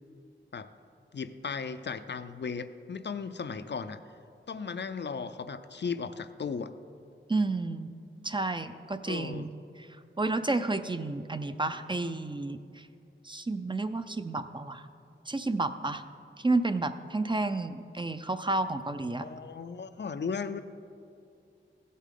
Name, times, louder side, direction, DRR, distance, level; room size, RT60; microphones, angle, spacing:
voice 1, 1.1-4.0 4.5-6.7 9.0-9.5 19.2-20.6, left 5 dB, 60° left, 11 dB, 0.4 m, -36 dB
voice 2, 7.3-7.9 8.2-9.5 9.8-9.9 10.2-12.9 13.2-14.9 15.3-16.0 16.4-19.3, right 2 dB, 25° right, 9 dB, 0.4 m, -31 dB
14.5 x 8.3 x 3.8 m, 2.5 s
wide cardioid pair, 55°, 20 cm